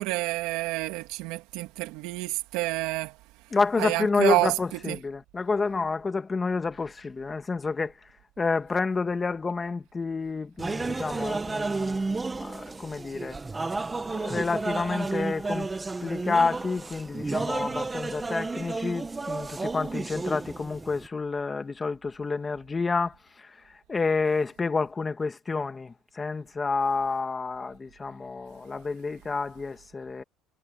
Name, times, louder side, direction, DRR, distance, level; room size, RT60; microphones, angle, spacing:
voice 1, 0.0-3.2 3.8-5.0, right 19 dB, 80° right, 2.4 m, -29 dB
voice 2, 3.5-7.9 8.4-13.4 14.0-15.7 16.0-30.2, left 4 dB, 20° left, 2.1 m, -29 dB
sound 1, 10.6-21.1, right 3 dB, 15° right, 1.5 m, -32 dB
cardioid pair, 115°, 0 cm